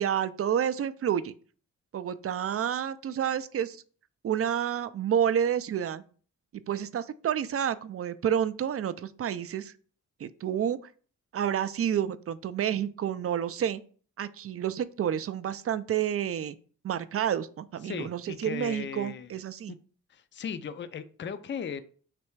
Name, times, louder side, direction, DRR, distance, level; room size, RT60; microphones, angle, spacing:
voice 1, 0.0-1.3 1.9-3.8 4.2-6.0 6.5-9.7 10.2-10.9 11.3-13.8 14.2-16.6 16.8-19.8, right 9 dB, 45° right, 14 dB, 0.4 m, -29 dB
voice 2, 17.8-19.3 20.1-21.8, left 7 dB, 35° left, 12 dB, 0.4 m, -37 dB
3.4 x 3.1 x 4.5 m, 0.43 s
cardioid pair, 60°, 33 cm